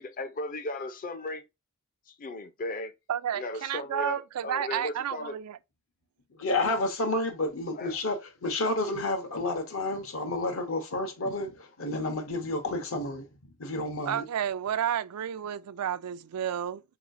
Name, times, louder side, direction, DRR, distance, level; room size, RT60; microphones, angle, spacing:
voice 1, 0.0-1.4 2.1-2.9 3.3-5.3 7.7-8.0, left 2 dB, 40° left, 0.5 m, -36 dB
voice 2, 3.1-5.6 14.1-16.8, right 9 dB, 85° right, 0.4 m, -31 dB
voice 3, 6.3-8.2 8.4-14.2, left 2 dB, 65° left, 1.0 m, -30 dB
4.7 x 3.0 x 2.6 m
head